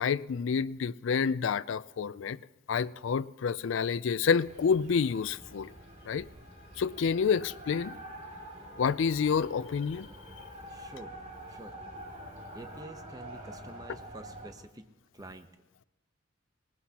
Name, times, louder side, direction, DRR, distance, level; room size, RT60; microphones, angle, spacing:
voice 1, 0.0-2.4 2.7-5.7 6.1-6.3 6.8-8.0 8.8-10.1, left 6 dB, 70° left, 0.4 m, -28 dB
sound 1, 4.4-14.5, right 1 dB, 35° right, 2.4 m, -47 dB
voice 2, 10.7-11.1 11.5-11.8 12.5-14.9 15.1-15.5, right 2 dB, 20° right, 0.8 m, -47 dB
20.0 x 19.0 x 2.9 m
head